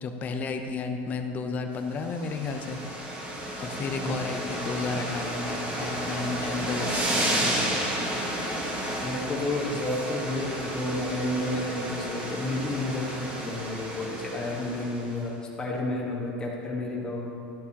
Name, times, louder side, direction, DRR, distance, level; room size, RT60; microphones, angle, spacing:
voice 1, 0.0-3.0 3.6-7.8, left 4 dB, 30° left, 6 dB, 0.7 m, -32 dB
sound 1, 1.9-15.2, right 1 dB, 25° right, 2.2 m, -32 dB
voice 2, 9.0-17.3, left 2 dB, 15° left, -3 dB, 1.6 m, -31 dB
12.5 x 8.1 x 3.0 m, 2.5 s
supercardioid pair, 140°, 6 cm